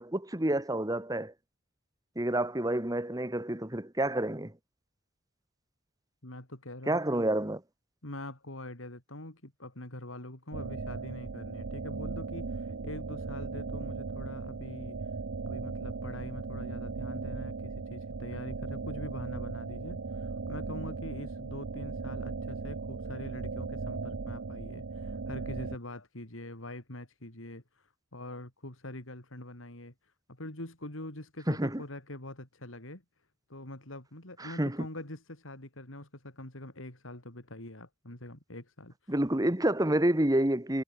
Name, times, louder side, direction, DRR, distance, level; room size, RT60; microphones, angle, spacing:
voice 1, 0.0-1.3 2.2-4.5 6.9-7.6 31.5-31.8 34.4-34.9 39.1-40.8, right 1 dB, 20° right, 1.7 m, -29 dB
voice 2, 6.2-7.3 8.0-15.1 15.4-33.0 33.5-39.1, left 1 dB, 85° left, 4.7 m, -44 dB
sound 1, 10.5-25.8, right 4 dB, 70° right, 0.7 m, -37 dB
head